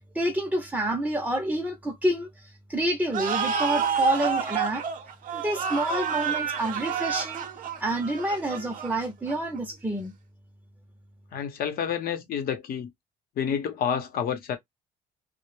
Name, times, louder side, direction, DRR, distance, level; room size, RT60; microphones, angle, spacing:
voice 1, 0.1-4.8 5.3-7.4 7.8-10.1, right 1 dB, 10° right, 0.6 m, -28 dB
sound 1, 3.1-9.6, right 7 dB, 55° right, 0.7 m, -29 dB
voice 2, 11.3-12.9 13.4-14.6, left 8 dB, 60° left, 0.8 m, -29 dB
2.2 x 2.1 x 3.1 m
cardioid pair, 110°, 17 cm